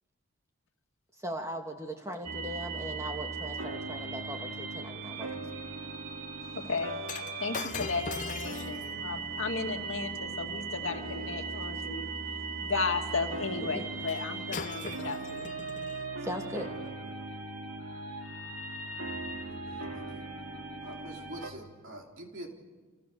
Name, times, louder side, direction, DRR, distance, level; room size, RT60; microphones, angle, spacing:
voice 1, 1.2-5.3 13.6-13.8 16.2-16.7, equal, 15° right, 3 dB, 2.4 m, -39 dB
sound 1, 2.2-21.5, right 3 dB, 75° right, 2.6 m, -38 dB
voice 2, 6.5-6.9 7.4-12.1 12.6-15.5, left 4 dB, 60° left, 3 dB, 2.4 m, -34 dB
Shatter, 7.0-11.4 14.1-14.2 14.5-16.0 16.8-16.9, left 5 dB, 35° left, 0.7 m, -41 dB
voice 3, 19.5-20.2 20.8-22.6, right 1 dB, 55° right, 1 dB, 3.6 m, -46 dB
29.5 x 28.5 x 6.9 m, 1.4 s
head